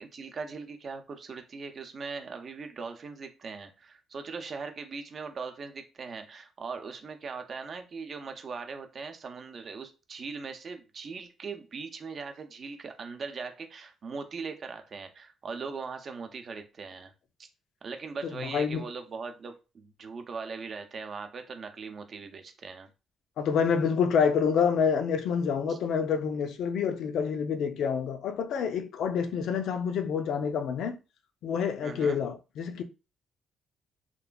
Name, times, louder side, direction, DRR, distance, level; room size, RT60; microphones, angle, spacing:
voice 1, 0.0-17.1 17.8-22.9 25.7-25.8 31.8-32.2, right 4 dB, 50° right, 0.5 m, -40 dB
voice 2, 18.3-18.8 23.4-31.0 31.4-32.8, left 6 dB, 75° left, 0.4 m, -27 dB
3.0 x 2.4 x 2.2 m
cardioid pair, 90°, 0 cm